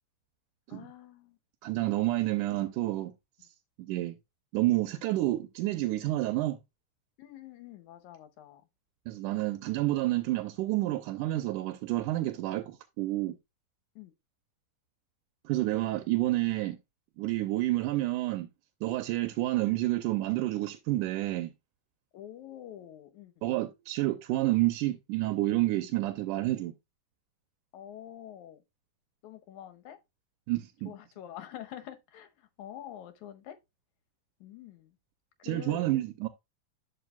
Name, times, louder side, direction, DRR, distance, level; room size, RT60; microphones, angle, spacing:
voice 1, 0.7-1.4 7.2-8.6 14.0-14.1 19.4-19.5 22.1-23.7 27.7-28.6 29.2-30.0 30.9-33.6 34.4-35.0 35.4-35.9, left 11 dB, 75° left, 2.1 m, -46 dB
voice 2, 1.6-3.1 3.8-4.1 4.5-6.6 9.1-13.4 15.5-16.8 17.2-18.5 18.8-21.5 23.4-26.7 30.5-30.9 35.4-36.3, right 17 dB, 85° right, 2.2 m, -29 dB
11.5 x 4.6 x 2.3 m
omnidirectional pair, 3.7 m